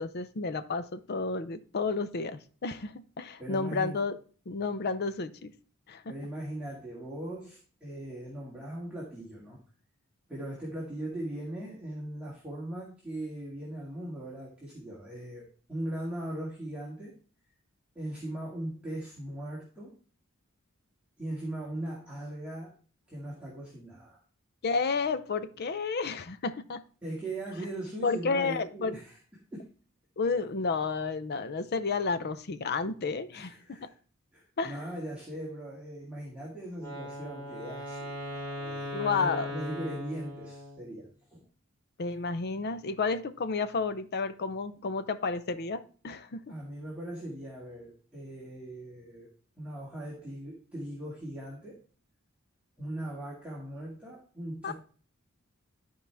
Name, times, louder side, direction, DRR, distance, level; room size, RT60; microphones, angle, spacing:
voice 1, 0.0-4.2 4.5-5.5 5.9-6.1 24.6-26.8 28.0-29.0 30.2-33.9 34.6-34.8 38.9-39.5 42.0-46.5 54.6-54.7, left 4 dB, 50° left, 12 dB, 0.6 m, -31 dB
voice 2, 3.4-4.0 6.1-9.6 10.3-17.1 18.0-20.0 21.2-22.7 23.1-24.2 27.0-29.2 29.5-29.7 33.3-33.9 34.3-41.5 46.5-49.3 49.6-51.8 52.8-54.7, right 1 dB, 5° right, -6 dB, 2.0 m, -39 dB
Wind instrument woodwind instrument, 36.8-40.9, left 1 dB, 10° left, 3.0 m, -39 dB
12.5 x 4.8 x 3.4 m, 0.40 s
head